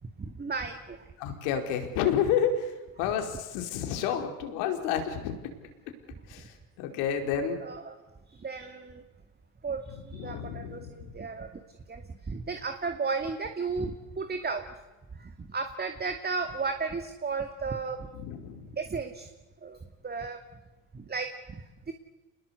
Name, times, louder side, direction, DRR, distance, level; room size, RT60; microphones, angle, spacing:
voice 1, 0.0-1.1 3.0-3.1 7.6-8.0 8.3-9.0 9.6-11.5 11.9-14.6 15.2-18.1 18.7-19.3 19.6-20.4 20.9-21.9, right 4 dB, 20° right, 6 dB, 2.5 m, -34 dB
voice 2, 1.2-2.7 3.0-5.3 6.3-6.5 6.8-7.6 10.2-10.9 18.2-18.7, left 8 dB, 70° left, 5 dB, 4.8 m, -29 dB
28.0 x 21.0 x 8.2 m, 1.1 s
hypercardioid pair, 85°, 44 cm